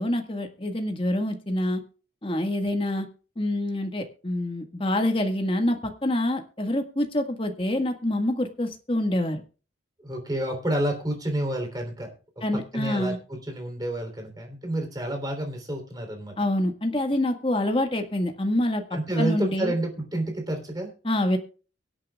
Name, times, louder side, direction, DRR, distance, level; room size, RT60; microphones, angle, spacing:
voice 1, 0.0-1.8 2.2-3.0 3.4-9.4 12.4-13.2 16.4-18.8 19.2-19.7 21.0-21.4, left 1 dB, 25° left, 5 dB, 1.7 m, -26 dB
voice 2, 10.0-12.1 12.4-16.4 18.9-20.9, right 1 dB, 20° right, 4 dB, 3.4 m, -29 dB
24.0 x 8.6 x 2.4 m, 0.36 s
head